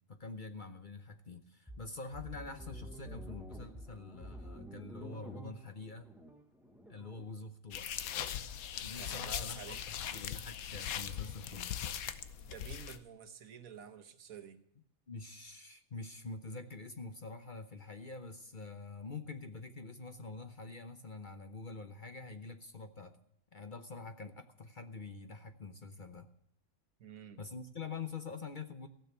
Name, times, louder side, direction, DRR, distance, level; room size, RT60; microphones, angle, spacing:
voice 1, 0.0-6.1 6.9-7.9 8.8-11.8 15.1-23.2 23.5-26.3 27.4-28.9, left 4 dB, 40° left, 8 dB, 0.8 m, -46 dB
sound 1, 1.7-7.3, right 1 dB, ahead, 0.8 m, -49 dB
sound 2, 7.7-13.0, left 9 dB, 80° left, 1.2 m, -40 dB
voice 2, 8.9-9.8 12.4-14.6 27.0-27.4, right 7 dB, 75° right, 10 dB, 1.5 m, -50 dB
15.5 x 7.1 x 8.1 m, 0.72 s
omnidirectional pair, 1.5 m